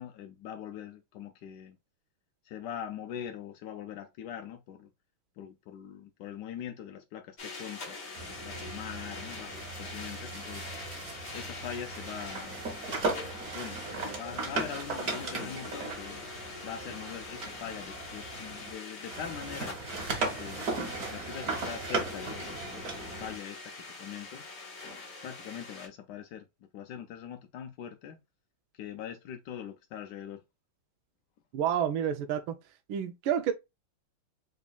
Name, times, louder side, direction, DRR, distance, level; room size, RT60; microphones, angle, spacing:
voice 1, 0.0-1.8 2.4-4.9 5.4-10.7 11.3-12.6 13.2-16.2 16.6-19.8 20.2-20.6 21.1-23.7 24.0-24.4 25.2-26.4 26.7-28.2 28.7-30.4, left 9 dB, 75° left, 1.0 m, -42 dB
sound 1, 7.4-25.9, left 3 dB, 40° left, 1.2 m, -44 dB
sound 2, 8.2-18.7 19.0-23.4, right 3 dB, 50° right, 1.6 m, -37 dB
voice 2, 31.5-32.5 32.9-33.5, right 9 dB, 80° right, 1.4 m, -29 dB
4.0 x 3.6 x 2.2 m
omnidirectional pair, 2.2 m